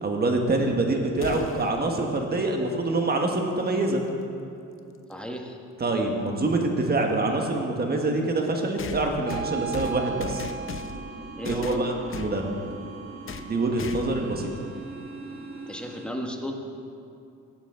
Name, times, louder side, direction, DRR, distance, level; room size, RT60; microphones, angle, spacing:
voice 1, 0.0-4.0 5.8-10.5 11.4-12.5 13.4-14.5, right 2 dB, 30° right, 2 dB, 1.5 m, -25 dB
sound 1, 1.2-1.8 3.9-4.0 5.1-5.2 8.8-11.1 11.5-12.4 13.3-13.5 13.8-14.3, left 6 dB, 45° left, 0.7 m, -38 dB
voice 2, 5.1-5.6 11.4-11.8 15.7-16.6, equal, 5° left, 2 dB, 1.3 m, -34 dB
sound 2, 9.2-16.0, right 5 dB, 55° right, 1.8 m, -38 dB
16.5 x 7.2 x 3.8 m, 2.6 s
cardioid pair, 90°, 30 cm